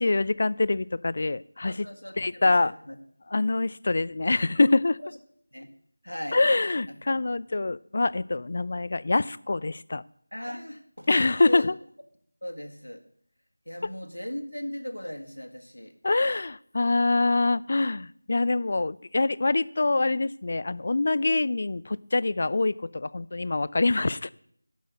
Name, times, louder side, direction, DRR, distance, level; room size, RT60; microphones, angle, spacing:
voice 1, 0.0-1.9 2.2-2.7 3.3-5.0 6.3-10.0 11.1-11.8 13.8-13.9 16.0-24.3, left 3 dB, 40° left, 19 dB, 0.3 m, -25 dB
voice 2, 1.7-3.0 5.5-5.7 6.0-6.4 7.2-7.3 7.6-7.7 10.3-11.1 11.5-11.7 12.4-13.0 13.7-15.9, equal, 90° left, 4 dB, 1.7 m, -38 dB
10.5 x 6.4 x 6.7 m, 0.64 s
figure-of-eight pair, 170°, 0 cm